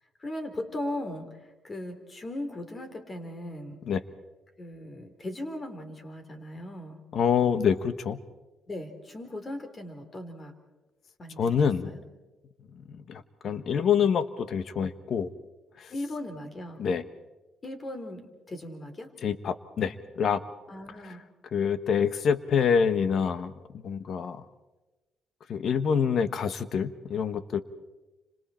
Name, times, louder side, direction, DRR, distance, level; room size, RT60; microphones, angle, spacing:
voice 1, 0.2-3.8 4.6-7.0 8.7-10.5 11.2-12.0 15.9-16.8 17.6-19.1 20.7-21.2, left 1 dB, 35° left, 6 dB, 3.8 m, -38 dB
voice 2, 7.1-8.2 11.4-11.9 12.7-15.3 15.8-15.9 16.8-17.0 19.2-20.4 21.0-21.1 21.5-23.5 23.8-24.4 25.5-27.6, left 7 dB, 60° left, 12 dB, 1.3 m, -26 dB
30.0 x 26.5 x 4.4 m, 1.1 s
cardioid pair, 90°, 0 cm